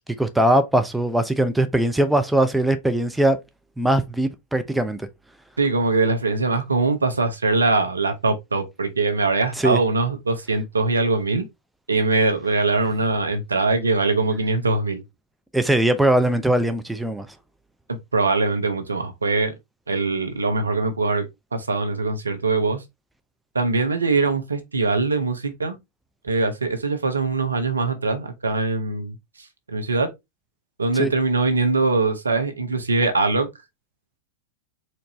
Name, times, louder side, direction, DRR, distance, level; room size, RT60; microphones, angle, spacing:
voice 1, 0.2-3.4 3.8-5.1 9.6-9.8 15.5-17.3 31.0-31.1, right 1 dB, 5° right, 0.6 m, -20 dB
voice 2, 5.6-11.4 11.9-15.0 18.1-19.5 19.9-21.3 21.5-22.8 23.5-25.8 26.2-29.1 29.7-30.1 30.8-33.5, right 3 dB, 90° right, 0.8 m, -22 dB
4.4 x 2.6 x 2.9 m
hypercardioid pair, 100°, 0 cm